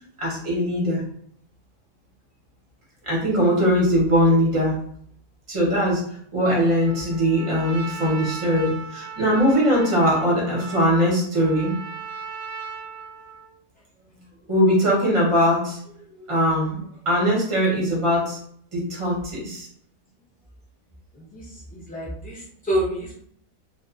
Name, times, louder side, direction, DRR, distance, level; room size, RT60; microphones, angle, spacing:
voice 1, 0.2-1.0 3.0-4.7 5.5-6.0 6.3-11.7 14.5-15.8 16.3-16.8 17.0-18.4 18.7-19.7, equal, 30° right, -4 dB, 0.7 m, -21 dB
Trumpet, 6.8-13.6, right 5 dB, 60° left, 0.8 m, -37 dB
voice 2, 21.1-23.2, right 1 dB, 10° left, -7 dB, 0.4 m, -28 dB
2.4 x 2.3 x 2.4 m, 0.64 s
omnidirectional pair, 1.7 m